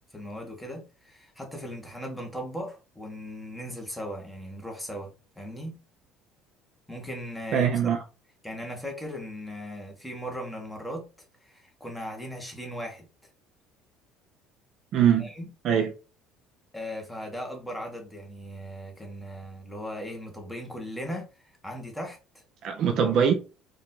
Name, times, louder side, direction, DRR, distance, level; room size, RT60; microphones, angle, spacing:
voice 1, 0.1-5.8 6.9-7.8 8.4-11.1 11.4-13.1 15.2-15.4 16.7-22.4, equal, 5° left, 1.1 m, -38 dB
voice 2, 7.5-8.0 14.9-15.3 15.6-15.9 22.6-23.3, right 8 dB, 45° right, 0.5 m, -22 dB
4.6 x 2.5 x 3.7 m
cardioid pair, 160°, 0 cm